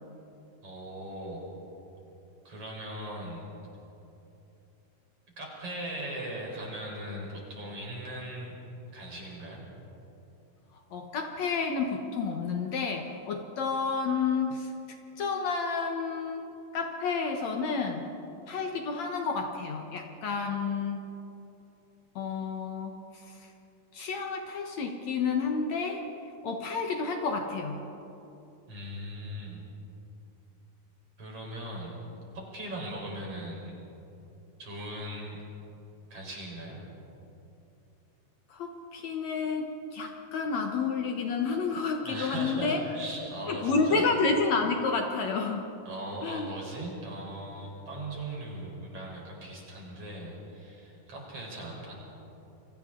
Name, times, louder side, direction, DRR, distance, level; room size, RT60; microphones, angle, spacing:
voice 1, 0.6-1.5 2.5-3.5 5.4-8.5 8.9-9.6 28.7-29.6 31.2-32.0 32.3-33.7 34.6-35.4 36.1-36.8 42.0-44.0 45.9-51.9, right 1 dB, 45° right, -2 dB, 5.5 m, -39 dB
voice 2, 10.9-14.7 15.2-18.0 18.5-21.1 22.2-23.4 23.9-26.0 26.4-27.8 38.5-42.8 43.2-45.7 46.2-46.5, left 4 dB, 65° left, 3 dB, 2.2 m, -30 dB
29.5 x 24.0 x 3.8 m, 2.9 s
omnidirectional pair, 3.7 m